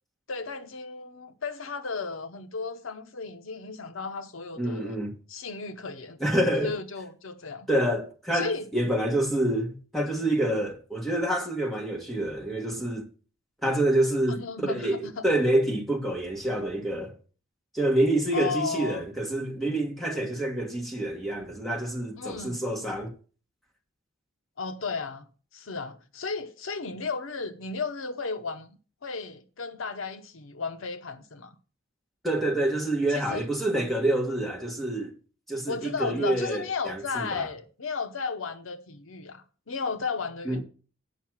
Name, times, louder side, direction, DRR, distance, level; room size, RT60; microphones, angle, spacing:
voice 1, 0.3-5.0 5.3-6.2 6.6-7.7 8.3-8.7 14.3-15.2 18.3-19.1 22.2-22.6 24.6-25.3 25.5-28.7 29.0-31.5 33.1-33.4 35.7-40.6, left 4 dB, 70° left, 0.7 m, -34 dB
voice 2, 4.6-5.1 6.2-6.7 7.7-13.0 13.6-17.1 17.7-23.1 32.2-35.1 35.5-37.5 40.4-40.6, right 1 dB, ahead, 1.5 m, -27 dB
9.0 x 5.6 x 6.0 m
head